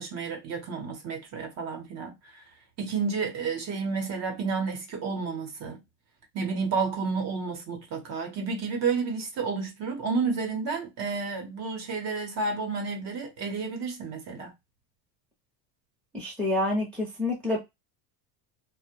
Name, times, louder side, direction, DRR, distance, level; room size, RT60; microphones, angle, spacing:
voice 1, 0.0-2.4 2.8-5.8 6.3-14.5, right 4 dB, 35° right, 0.7 m, -31 dB
voice 2, 16.1-17.6, left 2 dB, 5° left, 0.6 m, -28 dB
2.5 x 2.0 x 2.7 m
cardioid pair, 160°, 45 cm